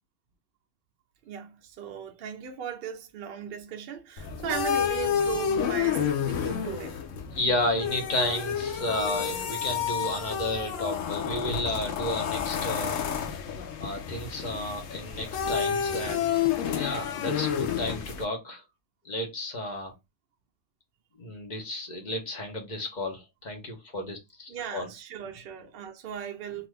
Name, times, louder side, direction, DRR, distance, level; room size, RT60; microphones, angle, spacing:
voice 1, 1.2-7.4 11.7-11.8 24.5-26.7, right 8 dB, 70° right, 0.5 m, -37 dB
sound 1, 4.2-18.2, left 8 dB, 70° left, 0.8 m, -30 dB
voice 2, 7.3-13.0 13.8-18.6 19.0-19.9 21.2-24.9, left 1 dB, 40° left, 0.7 m, -32 dB
2.6 x 2.5 x 3.2 m
omnidirectional pair, 1.5 m